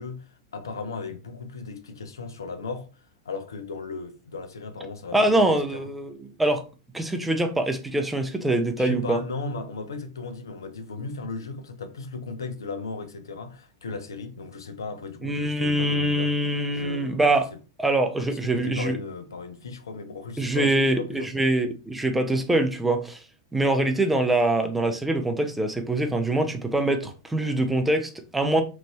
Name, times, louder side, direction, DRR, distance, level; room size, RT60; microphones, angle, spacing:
voice 1, 0.0-5.9 8.8-16.3 16.7-17.2 18.2-21.3, left 4 dB, 70° left, 0.5 m, -36 dB
voice 2, 5.1-6.6 6.9-9.2 15.2-17.5 17.8-19.0 20.4-23.2 23.5-28.6, right 1 dB, 5° right, 0.5 m, -24 dB
3.0 x 2.5 x 2.2 m
figure-of-eight pair, 95°, 2 cm